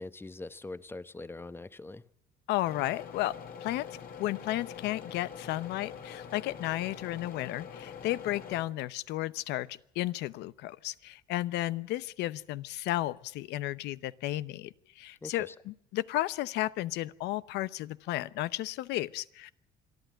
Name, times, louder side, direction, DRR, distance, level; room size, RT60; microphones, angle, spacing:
voice 1, 0.0-2.0 15.2-15.5, left 2 dB, 15° left, 0.9 m, -42 dB
voice 2, 2.5-3.3 3.6-3.9 4.2-19.5, left 16 dB, 85° left, 0.8 m, -33 dB
sound 1, 2.6-8.6, left 7 dB, 60° left, 3.0 m, -45 dB
26.5 x 11.5 x 9.1 m
cardioid pair, 110°, 17 cm